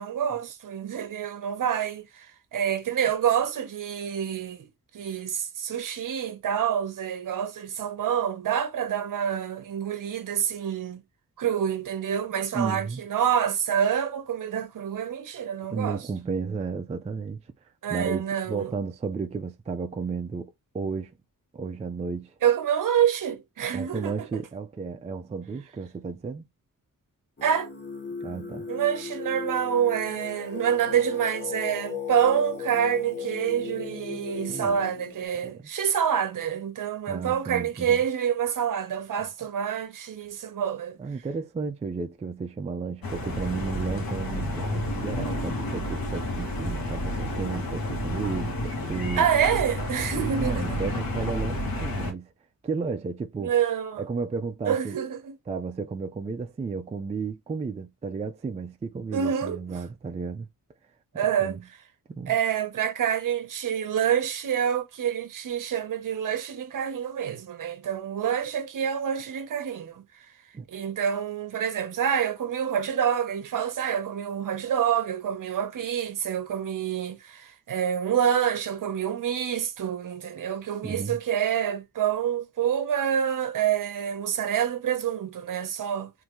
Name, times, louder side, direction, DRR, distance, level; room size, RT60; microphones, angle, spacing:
voice 1, 0.0-4.7 4.9-11.0 11.4-16.0 17.8-18.7 22.4-24.3 27.4-27.7 28.7-41.0 49.2-50.8 53.4-54.0 54.7-55.4 59.1-59.6 61.1-61.6 62.3-70.0 70.7-86.1, right 9 dB, 60° right, 0.9 m, -27 dB
voice 2, 12.5-13.0 15.7-17.4 17.9-21.1 21.5-22.3 23.7-26.4 28.2-28.7 34.5-34.8 37.1-38.0 39.2-39.3 41.0-49.3 50.1-52.3 52.6-53.5 54.0-55.0 55.5-60.5 61.4-61.6 62.1-62.4 70.5-70.6 80.8-81.2, right 5 dB, 20° right, 0.3 m, -33 dB
Singing, 27.4-35.3, left 6 dB, 30° left, 0.9 m, -36 dB
sound 1, 43.0-52.1, left 1 dB, 80° left, 1.3 m, -30 dB
3.6 x 2.6 x 3.0 m
wide cardioid pair, 145°, 35 cm